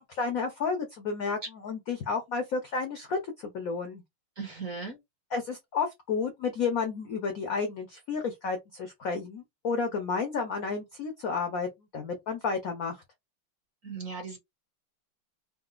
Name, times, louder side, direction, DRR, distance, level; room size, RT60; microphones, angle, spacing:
voice 1, 0.0-4.0 5.3-13.0, left 5 dB, 75° left, 0.7 m, -31 dB
voice 2, 4.4-5.0 13.8-14.4, right 4 dB, 50° right, 1.1 m, -37 dB
3.9 x 2.2 x 2.4 m
omnidirectional pair, 2.4 m